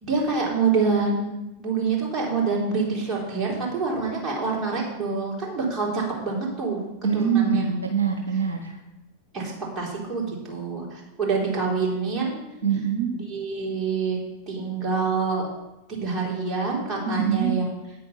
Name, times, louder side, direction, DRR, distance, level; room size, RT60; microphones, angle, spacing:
voice 1, 0.0-1.3 1.6-6.8 7.1-7.6 9.3-12.4 13.3-14.2 14.5-15.4 15.9-17.6, right 4 dB, 25° right, -3 dB, 3.9 m, -26 dB
voice 2, 7.0-8.8 12.6-13.1 17.1-17.6, right 7 dB, 70° right, 3 dB, 1.1 m, -24 dB
9.1 x 8.4 x 5.5 m, 0.97 s
figure-of-eight pair, 90°, 0 cm